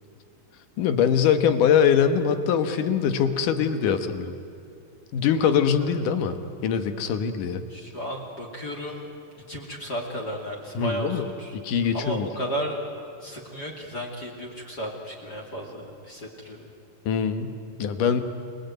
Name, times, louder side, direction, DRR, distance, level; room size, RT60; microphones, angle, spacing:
voice 1, 0.8-4.3 5.1-6.4 6.6-7.6 10.7-11.2 11.6-12.3 17.1-18.2, left 7 dB, 65° left, 9 dB, 2.7 m, -23 dB
voice 2, 7.7-9.1 9.5-11.5 11.9-12.8 13.2-16.7, equal, 30° left, 0 dB, 2.8 m, -34 dB
28.5 x 20.5 x 9.3 m, 2.8 s
omnidirectional pair, 4.3 m